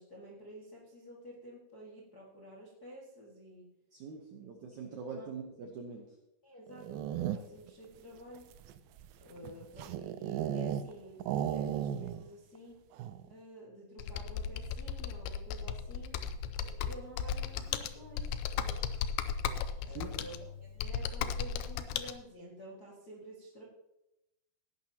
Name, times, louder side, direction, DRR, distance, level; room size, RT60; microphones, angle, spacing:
voice 1, 0.0-3.7 4.7-4.8 5.2-5.3 6.4-8.4 9.2-11.2 11.5-12.8 13.3-16.1 16.6-18.8 19.8-23.6, equal, 45° left, -4 dB, 1.2 m, -50 dB
voice 2, 3.9-6.0 9.4-9.5 19.9-20.1, right 5 dB, 75° right, 2 dB, 1.8 m, -43 dB
sound 1, 6.7-7.7 8.4-10.9 11.2-12.3 12.6-12.7 12.9-13.3, right 10 dB, 90° right, 2.0 m, -35 dB
Computer keyboard, 14.0-22.1, left 8 dB, 85° left, 2.2 m, -36 dB
17.5 x 11.0 x 2.9 m, 0.90 s
omnidirectional pair, 5.0 m